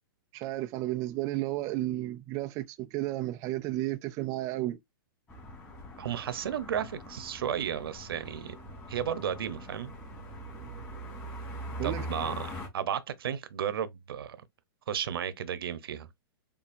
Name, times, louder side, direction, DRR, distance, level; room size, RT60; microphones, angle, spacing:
voice 1, 0.3-4.8 10.6-10.7 11.8-12.3, right 16 dB, 25° right, 0.4 m, -33 dB
sound 1, 5.3-12.7, equal, 20° left, 2.6 m, -42 dB
voice 2, 6.0-9.9 11.8-14.4 14.9-16.1, right 9 dB, 75° right, 0.9 m, -34 dB
7.1 x 2.7 x 2.6 m
hypercardioid pair, 140°, 12 cm